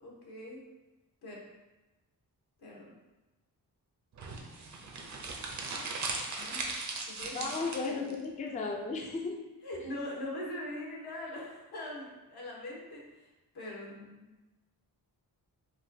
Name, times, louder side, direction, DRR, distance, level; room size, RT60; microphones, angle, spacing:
voice 1, 0.0-0.6 1.2-1.4 2.6-2.9 6.4-6.7 7.1-7.5 7.9-8.1 9.6-13.0 13.5-14.3, left 1 dB, 75° left, -3 dB, 1.1 m, -42 dB
sound 1, 4.2-8.1, right 3 dB, 45° right, 0.5 m, -38 dB
voice 2, 7.3-9.4, left 4 dB, 20° left, 1 dB, 0.3 m, -35 dB
5.0 x 2.2 x 2.6 m, 1.1 s
wide cardioid pair, 120°, 39 cm